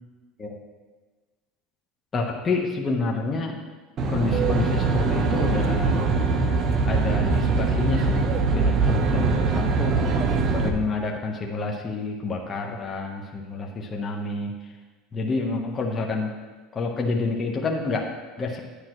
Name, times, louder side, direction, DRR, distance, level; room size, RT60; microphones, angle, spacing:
voice 1, 2.1-3.6 4.1-6.0 6.9-10.0 10.5-14.5 15.1-16.3 16.7-18.6, left 3 dB, 25° left, 0 dB, 1.1 m, -28 dB
Aircraft, 4.0-10.7, right 4 dB, 35° right, 0.9 m, -22 dB
10.0 x 9.7 x 3.1 m, 1.3 s
supercardioid pair, 135°, 0 cm